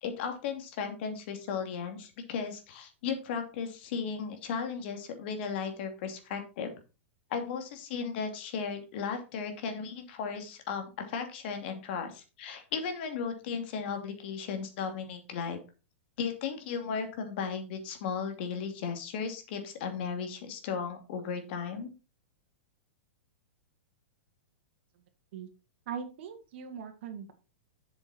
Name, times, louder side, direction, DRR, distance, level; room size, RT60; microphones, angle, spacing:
voice 1, 0.0-6.7 7.3-15.6 16.2-21.9, left 6 dB, 55° left, 6 dB, 2.7 m, -35 dB
voice 2, 25.9-27.3, right 7 dB, 65° right, 7 dB, 2.1 m, -40 dB
7.6 x 7.1 x 4.4 m, 0.31 s
hypercardioid pair, 125°, 7 cm